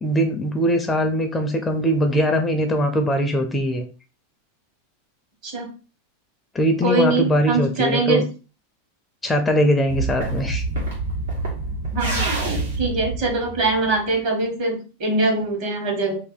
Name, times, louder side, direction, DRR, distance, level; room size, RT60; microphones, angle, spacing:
voice 1, 0.0-3.8 6.5-8.2 9.2-10.6, equal, 10° left, 5 dB, 0.5 m, -21 dB
voice 2, 6.8-8.2 9.6-9.7 11.9-16.2, right 3 dB, 50° right, 2 dB, 1.4 m, -23 dB
sound 1, 9.9-14.1, right 2 dB, 90° right, 1.4 m, -26 dB
2.7 x 2.6 x 3.9 m, 0.34 s
supercardioid pair, 140°, 0 cm